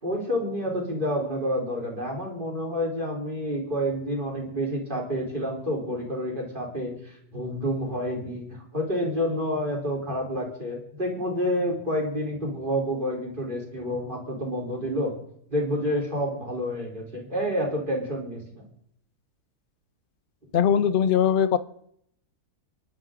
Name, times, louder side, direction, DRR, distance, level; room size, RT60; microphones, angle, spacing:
voice 1, 0.0-15.1 15.5-18.7, equal, 30° right, -2 dB, 4.1 m, -29 dB
voice 2, 20.5-21.6, left 8 dB, 45° left, 12 dB, 0.8 m, -20 dB
30.0 x 11.5 x 3.8 m, 0.72 s
omnidirectional pair, 1.6 m